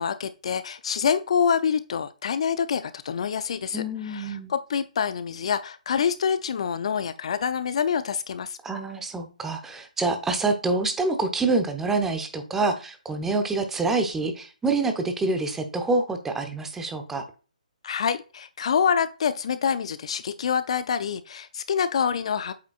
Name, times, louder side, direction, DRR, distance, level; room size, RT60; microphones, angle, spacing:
voice 1, 0.0-8.6 17.8-22.5, left 7 dB, 50° left, 13 dB, 0.4 m, -26 dB
voice 2, 3.7-4.5 8.6-17.2, right 3 dB, 5° right, 6 dB, 0.7 m, -26 dB
8.2 x 4.9 x 2.4 m, 0.34 s
figure-of-eight pair, 135°, 4 cm